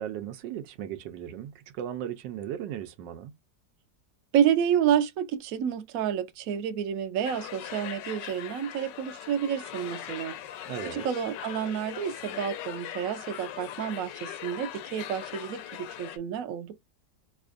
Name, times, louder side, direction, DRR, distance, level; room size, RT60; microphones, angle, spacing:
voice 1, 0.0-3.3 10.7-11.0, right 10 dB, 85° right, 1.3 m, -36 dB
voice 2, 4.3-10.4 10.8-16.7, right 9 dB, 65° right, 1.0 m, -29 dB
sound 1, 7.2-16.2, left 11 dB, 90° left, 1.3 m, -40 dB
5.0 x 2.3 x 2.4 m
omnidirectional pair, 1.9 m